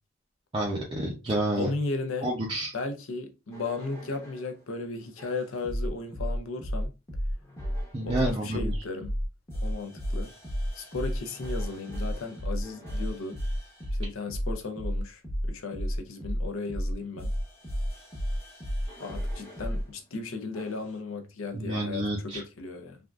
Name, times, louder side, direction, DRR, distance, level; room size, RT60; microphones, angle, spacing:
voice 1, 0.5-1.7 2.2-2.7 7.9-8.7 21.5-22.4, right 1 dB, 25° right, 0.5 m, -29 dB
voice 2, 1.6-2.3 2.7-6.9 8.0-9.1 9.6-10.3 10.7-13.4 13.9-15.2 15.5-17.3 19.0-23.0, left 3 dB, 65° left, 0.6 m, -35 dB
sound 1, 3.5-4.5 5.2-19.9 20.5-20.9, equal, 15° left, 0.8 m, -33 dB
3.4 x 2.4 x 2.3 m
head